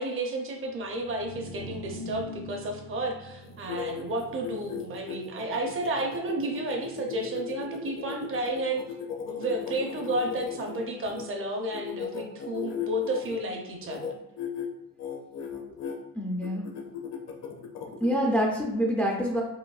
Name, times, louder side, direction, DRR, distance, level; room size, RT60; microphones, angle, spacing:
voice 1, 0.0-8.8 9.3-14.1, right 1 dB, 40° right, 3 dB, 0.6 m, -32 dB
sound 1, 0.9-7.3, equal, 65° right, 0.9 m, -44 dB
sound 2, 3.4-11.2 11.7-13.4 13.8-14.1 14.4-14.7 15.0-16.0 16.4-18.2, left 7 dB, 50° left, 0.6 m, -37 dB
voice 2, 16.1-16.7 18.0-19.4, equal, 5° left, -2 dB, 0.3 m, -26 dB
5.0 x 3.0 x 2.3 m, 0.89 s
cardioid pair, 160°, 35 cm